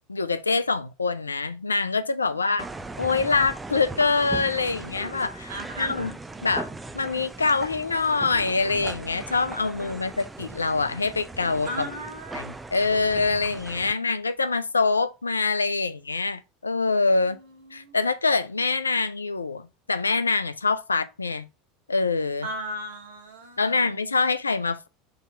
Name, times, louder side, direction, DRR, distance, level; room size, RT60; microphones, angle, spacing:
voice 1, 0.0-2.7 3.0-5.5 5.8-6.1 6.4-6.7 6.9-11.9 12.3-17.4 17.7-21.5 21.9-22.5 23.6-24.9, left 4 dB, 85° left, 0.3 m, -25 dB
sound 1, 2.6-13.9, right 3 dB, 15° right, 0.4 m, -39 dB
voice 2, 5.4-6.1 9.6-10.1 11.6-12.4 17.1-18.0 22.4-23.9, right 1 dB, 75° right, 1.3 m, -38 dB
3.8 x 2.8 x 4.5 m
figure-of-eight pair, 80°, 0 cm